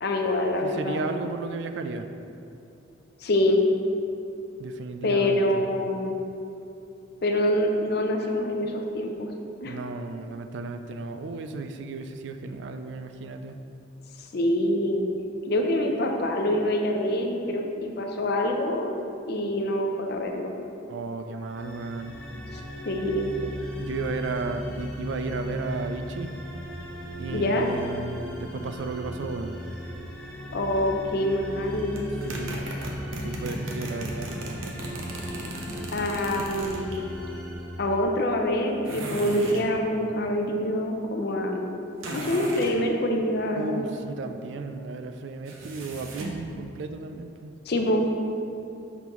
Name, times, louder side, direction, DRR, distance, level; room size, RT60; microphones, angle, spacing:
voice 1, 0.0-1.1 3.2-3.6 5.0-6.2 7.2-9.3 9.6-9.8 14.2-15.1 15.5-18.9 19.3-20.5 22.5-22.6 22.9-23.3 27.3-27.7 30.5-32.0 35.9-37.0 37.8-41.7 42.1-43.8 47.7-48.1, left 1 dB, 50° left, 2 dB, 0.5 m, -25 dB
voice 2, 0.6-2.1 4.6-5.6 9.6-13.6 20.9-22.1 23.8-26.3 27.2-29.6 32.2-32.6 33.2-34.3 43.6-47.5, right 3 dB, 60° right, 7 dB, 0.3 m, -34 dB
sound 1, 21.5-38.6, equal, 5° left, 0.7 m, -37 dB
sound 2, 32.0-37.0 38.9-39.7 42.0-42.8 45.5-46.4, right 1 dB, 80° right, 0.8 m, -36 dB
6.0 x 5.4 x 3.0 m, 2.7 s
head